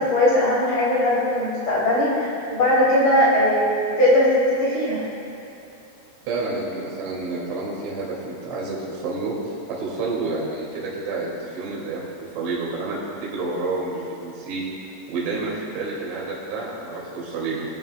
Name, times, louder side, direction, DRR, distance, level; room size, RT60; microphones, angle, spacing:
voice 1, 0.0-5.0, left 1 dB, 40° left, -8 dB, 3.5 m, -19 dB
voice 2, 6.3-12.1 12.4-14.6 15.1-17.6, right 3 dB, 70° right, -5 dB, 4.5 m, -29 dB
23.0 x 9.6 x 2.2 m, 2.8 s
omnidirectional pair, 5.8 m